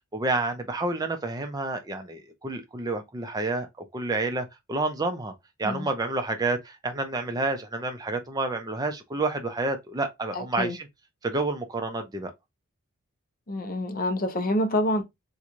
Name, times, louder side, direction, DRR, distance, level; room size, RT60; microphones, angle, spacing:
voice 1, 0.1-3.7 3.9-5.3 5.6-10.9 11.2-12.3, right 2 dB, 15° right, 0.5 m, -29 dB
voice 2, 10.3-10.8 13.5-15.0, left 1 dB, 40° left, 0.6 m, -27 dB
3.0 x 2.2 x 3.7 m
head